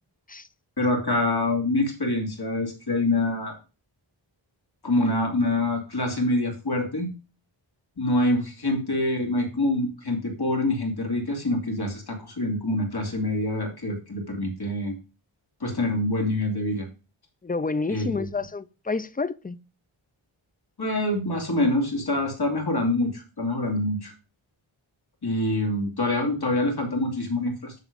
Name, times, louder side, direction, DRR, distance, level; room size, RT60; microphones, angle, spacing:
voice 1, 0.8-3.6 4.8-7.1 8.0-14.9 15.6-16.9 17.9-18.3 20.8-24.1 25.2-27.7, left 1 dB, 50° left, 2.9 m, -25 dB
voice 2, 17.4-19.6, left 3 dB, 20° left, 0.6 m, -29 dB
9.9 x 3.8 x 5.2 m
wide cardioid pair, 65°, 48 cm